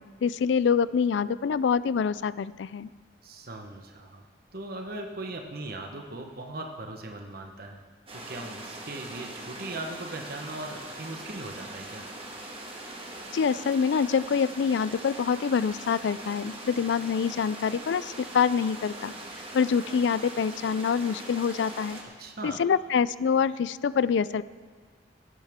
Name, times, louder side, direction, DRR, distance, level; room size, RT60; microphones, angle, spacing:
voice 1, 0.0-2.9 13.3-19.1 19.5-22.0 22.4-24.4, left 6 dB, 70° left, 17 dB, 0.3 m, -26 dB
voice 2, 3.2-4.3 4.5-7.8 8.1-12.0 22.2-22.6, right 2 dB, 55° right, 3 dB, 1.1 m, -39 dB
sound 1, 8.1-22.0, right 1 dB, 30° right, 1.6 m, -41 dB
16.5 x 11.5 x 3.6 m, 1.5 s
head